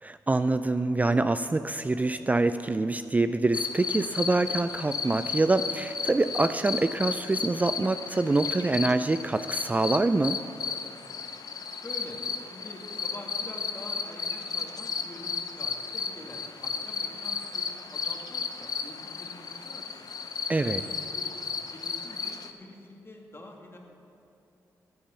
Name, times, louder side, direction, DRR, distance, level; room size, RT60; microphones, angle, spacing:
voice 1, 0.0-10.4 20.5-20.8, right 2 dB, 20° right, 11 dB, 0.4 m, -25 dB
sound 1, 3.5-22.5, left 5 dB, 60° left, 0.7 m, -34 dB
voice 2, 11.7-20.1 20.6-23.8, left 1 dB, 35° left, 1 dB, 2.1 m, -46 dB
10.5 x 8.6 x 6.9 m, 2.7 s
supercardioid pair, 50°, 7 cm